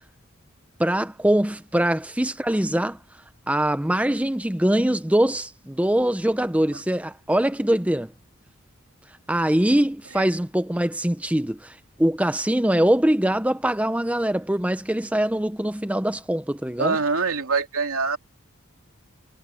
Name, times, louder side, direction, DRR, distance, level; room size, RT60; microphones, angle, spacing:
voice 1, 0.8-3.0 3.5-8.1 9.3-17.0, right 1 dB, 5° right, 0.6 m, -23 dB
voice 2, 16.8-18.2, right 4 dB, 80° right, 2.7 m, -24 dB
head